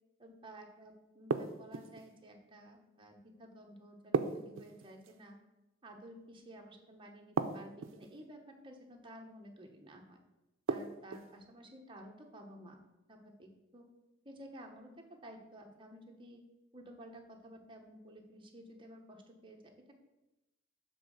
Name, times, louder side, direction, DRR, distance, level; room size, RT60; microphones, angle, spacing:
voice 1, 0.2-5.4 5.8-10.2 10.7-12.8 13.1-13.9 14.2-16.4 16.7-19.6, right 1 dB, 25° right, 2 dB, 1.0 m, -53 dB
sound 1, 1.3-2.1 4.1-5.2 7.4-8.1 10.7-11.3, right 4 dB, 75° right, 0.5 m, -35 dB
7.3 x 3.6 x 6.3 m, 0.98 s
head